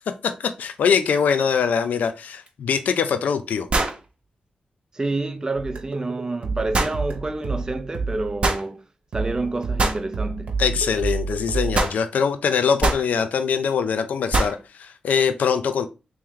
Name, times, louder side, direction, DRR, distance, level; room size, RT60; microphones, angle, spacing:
voice 1, 0.4-3.7 10.6-15.9, left 6 dB, 85° left, 0.4 m, -23 dB
sound 1, 2.5-2.6 3.7-4.0 6.7-7.0 8.4-8.6 9.8-10.0 11.7-12.0 12.8-13.1 14.3-14.6, right 2 dB, 45° right, 0.8 m, -22 dB
voice 2, 4.9-8.8 9.1-10.6, right 2 dB, 25° right, 0.4 m, -28 dB
sound 2, 5.6-8.7 9.1-11.8, right 4 dB, 75° right, 0.9 m, -29 dB
3.2 x 3.0 x 3.6 m
cardioid pair, 65°, 3 cm